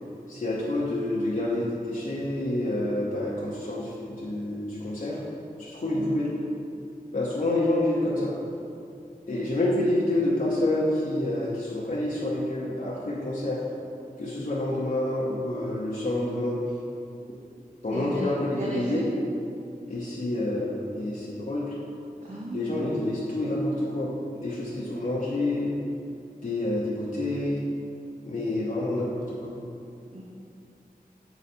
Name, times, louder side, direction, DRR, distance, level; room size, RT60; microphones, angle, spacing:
voice 1, 0.3-5.2 5.6-6.3 7.1-8.3 9.3-13.6 14.2-16.6 17.8-19.0 19.9-21.7 22.5-25.7 26.4-27.6 28.2-29.5, left 1 dB, 55° left, -7 dB, 0.8 m, -28 dB
voice 2, 17.9-19.0 22.2-23.0 30.1-30.2, right 1 dB, 50° right, -5 dB, 0.8 m, -35 dB
6.9 x 4.0 x 4.3 m, 2.6 s
wide cardioid pair, 70°, 16 cm